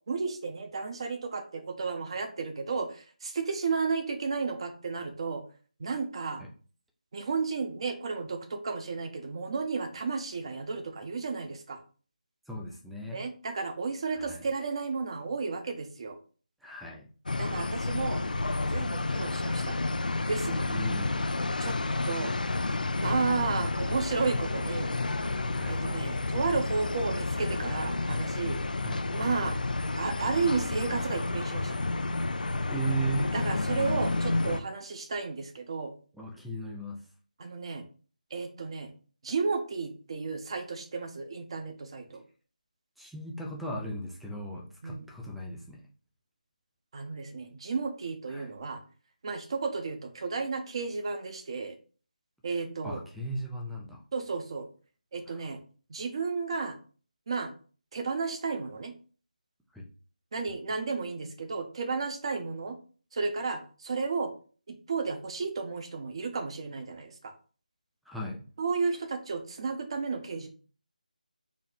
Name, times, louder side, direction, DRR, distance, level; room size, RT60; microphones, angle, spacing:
voice 1, 0.1-5.4 5.8-6.4 7.1-11.8 13.1-16.2 17.4-18.2 18.7-19.8 20.3-20.7 21.6-21.8 22.1-22.3 23.0-24.9 25.7-28.6 29.1-29.6 30.0-31.8 33.3-35.9 37.4-37.8 38.3-38.9 39.2-42.2 44.8-45.1 46.9-48.8 49.2-51.8 52.4-53.0 54.1-54.7 55.1-55.6 55.9-56.8 57.3-57.5 57.9-58.9 60.3-62.8 63.1-64.3 64.7-67.3 68.6-70.5, right 4 dB, 40° right, 6 dB, 0.7 m, -33 dB
voice 2, 12.5-13.2 14.1-14.5 16.6-17.1 20.7-21.2 25.5-25.9 28.8-29.0 32.7-33.3 36.1-37.1 43.0-45.8 48.3-48.5 52.8-54.0 55.3-55.5 59.7-59.9 68.1-68.4, right 2 dB, ahead, -1 dB, 0.3 m, -37 dB
sound 1, 17.3-34.6, left 2 dB, 80° left, 0.4 m, -30 dB
4.1 x 2.1 x 4.1 m, 0.40 s
figure-of-eight pair, 165°, 5 cm